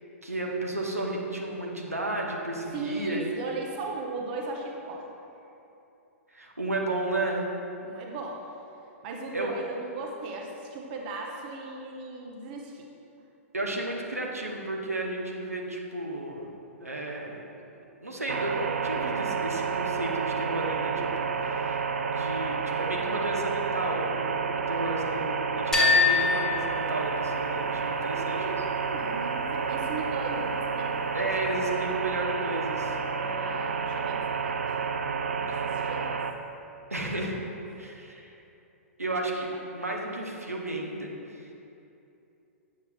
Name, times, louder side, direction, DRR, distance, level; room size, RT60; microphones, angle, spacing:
voice 1, 0.2-3.3 6.3-7.5 9.3-9.6 13.5-16.5 16.8-17.4 17.8-21.8 22.0-28.6 31.1-33.0 35.5-35.6 36.9-37.4 37.8-38.3 39.0-41.5, right 1 dB, 80° right, -1 dB, 0.8 m, -33 dB
voice 2, 2.7-5.1 7.8-8.4 9.0-12.9 28.3-31.1 33.2-34.6 35.4-36.1, right 3 dB, 40° right, 1 dB, 0.7 m, -37 dB
sound 1, 18.3-36.3, right 5 dB, 65° right, 0.4 m, -30 dB
sound 2, 25.7-27.6, left 5 dB, 5° left, 0.8 m, -25 dB
8.4 x 6.8 x 2.3 m, 2.8 s
figure-of-eight pair, 110°, 8 cm